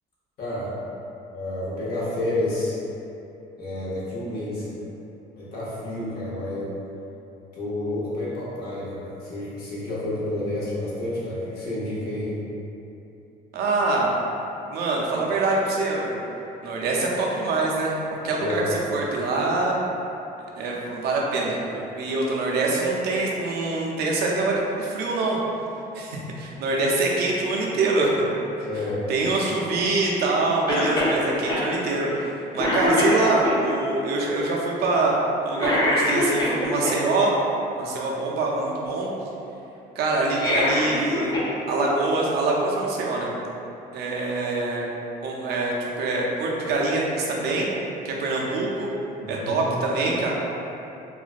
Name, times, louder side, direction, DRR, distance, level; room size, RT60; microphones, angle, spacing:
voice 1, 0.4-0.7 1.3-2.8 3.6-4.8 5.4-6.7 7.5-12.3 18.4-18.7 28.6-29.1 49.2-49.7, left 1 dB, 65° left, -8 dB, 0.9 m, -30 dB
voice 2, 13.5-14.1 14.7-16.2 16.6-17.9 18.2-19.8 20.6-25.4 25.9-28.1 29.1-35.1 35.4-37.3 37.8-39.1 40.0-41.3 41.7-43.3 43.9-44.9 45.2-47.7 48.0-48.9 49.3-50.3, right 3 dB, 70° right, -3 dB, 0.4 m, -24 dB
Cough, 30.7-31.2 31.5-31.6 32.1-32.3 32.6-33.6 35.6-36.9 40.2-41.5 41.8-41.9 43.0-43.1, left 1 dB, 25° left, 0.5 m, -23 dB
2.4 x 2.1 x 2.4 m, 2.9 s
cardioid pair, 110°, 17 cm